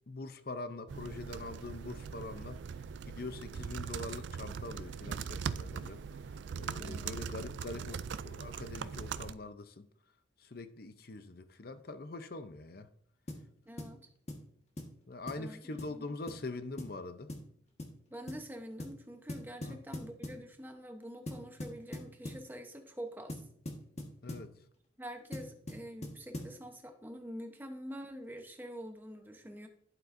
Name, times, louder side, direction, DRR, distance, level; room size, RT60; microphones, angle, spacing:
voice 1, 0.1-2.6 3.1-6.0 6.3-9.9 10.4-12.9 15.1-17.3 19.6-19.8 24.2-24.5, left 2 dB, 50° left, 0.6 m, -43 dB
sound 1, 0.9-9.3, right 6 dB, 65° right, 0.3 m, -41 dB
voice 2, 6.8-7.2 13.7-14.1 15.4-16.1 18.1-23.4 25.0-29.7, equal, 10° right, 0.9 m, -46 dB
sound 2, 13.3-13.5 13.8-14.0 14.3-14.5 14.8-14.9 15.3-15.5 15.8-16.0 16.3-16.4 16.8-17.0 17.3-17.5 17.8-18.0 18.3-18.4 18.8-19.0 19.3-20.4 21.3-22.5 23.3-24.5 25.3-26.6, left 1 dB, 35° left, 1.4 m, -42 dB
11.0 x 7.7 x 2.6 m
head